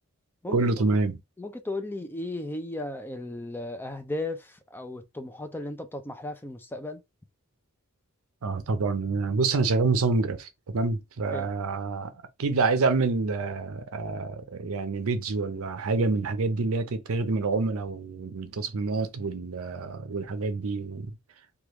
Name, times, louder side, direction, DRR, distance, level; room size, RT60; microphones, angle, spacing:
voice 1, 0.5-1.2 8.4-12.1 12.4-21.2, right 3 dB, 70° right, 0.5 m, -27 dB
voice 2, 1.4-7.0 11.3-11.5, left 2 dB, 10° left, 0.4 m, -35 dB
3.3 x 2.3 x 3.0 m
head